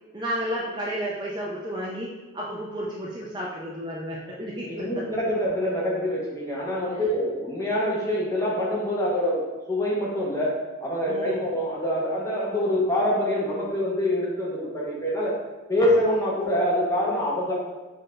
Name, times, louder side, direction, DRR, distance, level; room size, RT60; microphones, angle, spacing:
voice 1, 0.1-5.0 6.9-7.0 11.1-11.5, equal, 20° right, -4 dB, 0.5 m, -32 dB
voice 2, 4.6-10.5 10.8-15.4 15.7-17.5, left 1 dB, 15° left, -5 dB, 0.9 m, -25 dB
5.5 x 2.7 x 3.3 m, 1.2 s
head